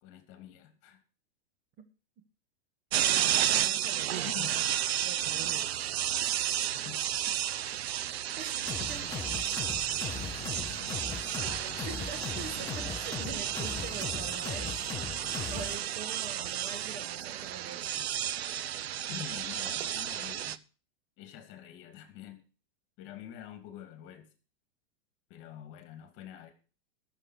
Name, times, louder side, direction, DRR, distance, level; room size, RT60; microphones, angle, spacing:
voice 1, 0.0-1.0 4.3-4.6 6.6-7.4 10.5-10.6 14.5-14.7 19.1-20.6 21.2-22.4 23.0-24.3 25.3-26.5, left 10 dB, 40° left, 2.5 m, -46 dB
sound 1, 2.9-20.6, right 11 dB, 80° right, 0.8 m, -32 dB
voice 2, 3.0-4.3 5.0-5.8 8.4-9.1 11.6-14.8 15.4-18.1, right 5 dB, 30° right, 1.5 m, -44 dB
sound 2, 8.7-15.8, left 7 dB, 10° left, 0.5 m, -39 dB
13.0 x 6.7 x 6.3 m
hypercardioid pair, 145°, 31 cm